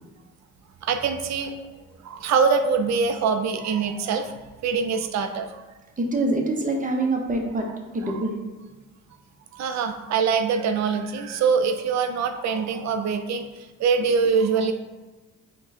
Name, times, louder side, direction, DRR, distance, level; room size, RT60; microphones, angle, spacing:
voice 1, 0.8-1.6 2.0-4.4 4.6-5.6 8.0-8.2 9.5-13.5 13.8-14.7, right 5 dB, 65° right, 6 dB, 0.5 m, -24 dB
voice 2, 6.0-7.7 7.9-8.4, right 2 dB, 25° right, 2 dB, 0.8 m, -25 dB
4.6 x 2.3 x 4.1 m, 1.3 s
cardioid pair, 90°, 30 cm